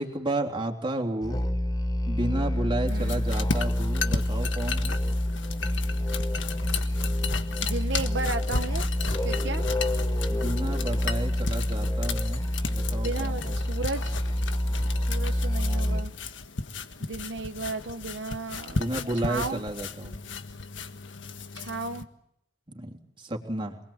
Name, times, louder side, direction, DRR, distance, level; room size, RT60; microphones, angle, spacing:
voice 1, 0.0-1.4 2.1-5.0 10.3-13.4 18.7-20.1 22.7-23.8, right 1 dB, 25° right, 3 dB, 3.3 m, -32 dB
Musical instrument, 1.2-16.2, left 1 dB, 20° left, 1.4 m, -28 dB
sound 1, 2.9-22.0, left 4 dB, 75° left, 1.6 m, -35 dB
voice 2, 2.9-3.2 7.6-8.9 9.2-9.6 13.0-14.1 15.1-16.1 17.0-18.8 19.2-19.6 21.5-22.1, right 3 dB, 70° right, 7 dB, 1.1 m, -34 dB
27.0 x 21.0 x 8.9 m, 0.77 s
head